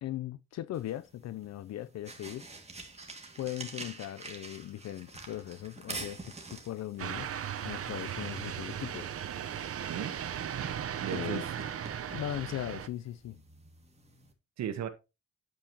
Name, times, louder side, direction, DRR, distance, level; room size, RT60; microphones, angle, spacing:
voice 1, 0.0-2.5 3.4-7.3 7.6-9.1 11.1-11.4 12.1-13.4, left 13 dB, 60° left, 0.5 m, -39 dB
sound 1, 0.7-14.3, right 3 dB, 20° right, 2.1 m, -48 dB
sound 2, 7.0-12.9, right 9 dB, 50° right, 0.9 m, -37 dB
voice 2, 9.9-11.4 14.6-14.9, right 9 dB, 65° right, 1.3 m, -37 dB
8.6 x 7.8 x 2.9 m
cardioid pair, 90°, 30 cm